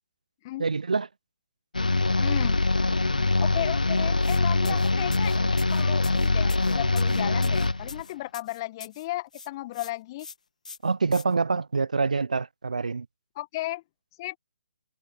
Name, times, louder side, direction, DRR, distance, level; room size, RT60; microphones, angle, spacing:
voice 1, 0.6-1.1 4.7-4.8 10.8-13.1, right 4 dB, 70° right, 0.8 m, -26 dB
sound 1, 1.7-8.0, left 3 dB, 85° left, 0.4 m, -24 dB
voice 2, 2.2-2.6 3.4-10.3 13.3-13.8 14.2-14.4, left 17 dB, 30° left, 1.6 m, -35 dB
sound 2, 4.2-4.4 4.6-9.1 9.3-9.9 10.2-10.3 10.6-11.2, left 4 dB, 65° left, 1.6 m, -44 dB
figure-of-eight pair, 140°, 4 cm